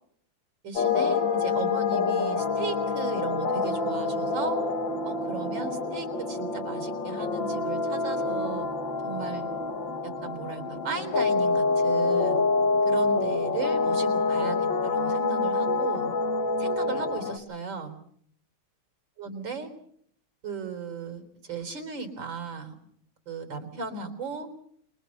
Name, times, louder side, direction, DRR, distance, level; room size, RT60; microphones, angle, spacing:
voice 1, 0.6-4.6 5.0-8.7 9.0-9.5 10.0-12.4 12.9-16.1 16.6-17.9 19.2-19.7 20.4-22.7 23.3-24.5, right 5 dB, 60° right, 8 dB, 4.5 m, -36 dB
sound 1, 0.8-17.4, left 3 dB, 60° left, 2.6 m, -27 dB
29.0 x 23.5 x 5.5 m, 0.66 s
omnidirectional pair, 2.3 m